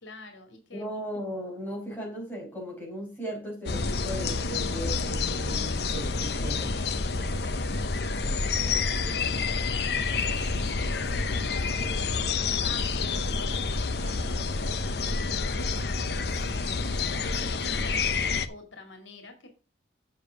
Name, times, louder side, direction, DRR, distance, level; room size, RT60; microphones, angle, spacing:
voice 1, 0.0-0.9 8.6-14.7 15.0-19.5, left 2 dB, 85° left, 2.2 m, -47 dB
voice 2, 0.7-6.7, equal, 10° left, 5.3 m, -37 dB
sound 1, 3.7-18.5, left 4 dB, 60° left, 0.7 m, -28 dB
7.3 x 7.1 x 4.9 m
head